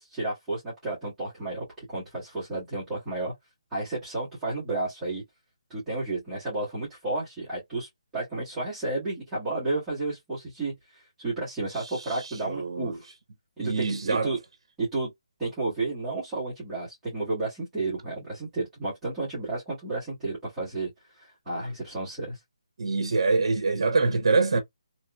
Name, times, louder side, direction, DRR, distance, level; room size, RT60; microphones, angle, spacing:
voice 1, 0.1-3.3 3.7-5.2 5.7-13.1 13.6-14.4 14.8-15.1 15.4-22.4, right 2 dB, 5° right, 1.2 m, -32 dB
voice 2, 11.7-13.0 13.6-14.3 22.8-24.6, right 3 dB, 55° right, 0.8 m, -25 dB
2.9 x 2.9 x 2.2 m
hypercardioid pair, 175°, 3 cm